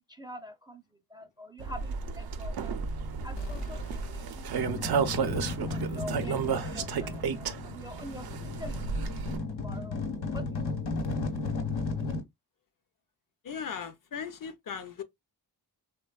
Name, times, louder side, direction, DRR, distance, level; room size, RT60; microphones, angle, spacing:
voice 1, 0.1-0.8 1.1-5.0 5.7-8.8 9.5-10.0 10.3-10.6, equal, 10° right, 0.4 m, -45 dB
sound 1, 1.6-9.4, right 6 dB, 65° right, 0.5 m, -33 dB
sound 2, 3.4-6.1, left 2 dB, 90° left, 0.8 m, -42 dB
sound 3, 4.6-12.2, left 3 dB, 70° left, 1.1 m, -34 dB
voice 2, 13.4-15.0, left 7 dB, 55° left, 0.5 m, -38 dB
3.2 x 2.2 x 2.2 m
cardioid pair, 60°, 41 cm